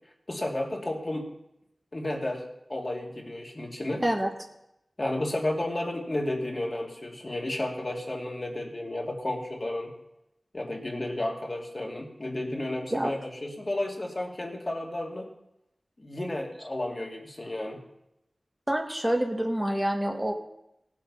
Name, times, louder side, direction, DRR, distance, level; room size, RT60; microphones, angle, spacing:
voice 1, 0.3-1.3 1.9-2.4 2.7-4.0 5.0-9.9 10.5-15.3 16.0-17.8, left 1 dB, 40° left, 0 dB, 2.8 m, -32 dB
voice 2, 4.0-4.3 12.9-13.1 18.7-20.3, right 1 dB, 15° right, 2 dB, 1.7 m, -27 dB
17.5 x 7.7 x 5.7 m, 0.83 s
wide cardioid pair, 50°, 0 cm